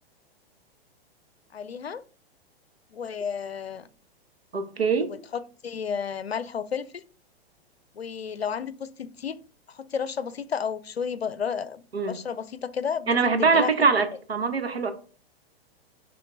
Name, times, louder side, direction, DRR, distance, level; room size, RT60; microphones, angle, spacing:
voice 1, 1.5-2.0 2.9-3.9 5.1-7.0 7.9-9.4 9.7-13.1 13.4-13.7, left 7 dB, 85° left, 17 dB, 0.5 m, -32 dB
voice 2, 4.5-5.1 11.9-12.2 13.1-14.9, right 4 dB, 80° right, 8 dB, 1.0 m, -23 dB
10.0 x 3.7 x 2.5 m, 0.40 s
figure-of-eight pair, 105°, 30 cm